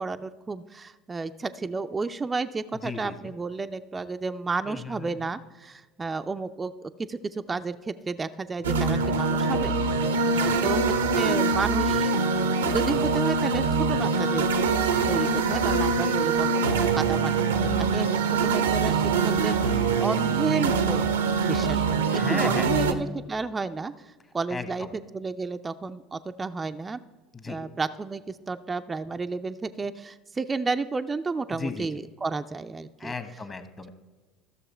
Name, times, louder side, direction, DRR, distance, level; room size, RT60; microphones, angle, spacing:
voice 1, 0.0-9.9 10.2-12.1 12.7-14.4 15.1-21.0 21.4-23.9 24.3-27.0 27.5-33.1, right 4 dB, 20° right, 8 dB, 0.4 m, -32 dB
voice 2, 2.8-3.3 4.7-5.2 10.3-10.6 15.9-16.2 22.1-22.7 24.5-24.9 27.3-27.6 31.5-31.9 33.0-33.9, left 4 dB, 25° left, 9 dB, 1.2 m, -35 dB
sound 1, 8.6-22.9, right 4 dB, 85° right, 0.7 m, -24 dB
14.0 x 6.5 x 4.4 m, 1.3 s
hypercardioid pair, 70°, 0 cm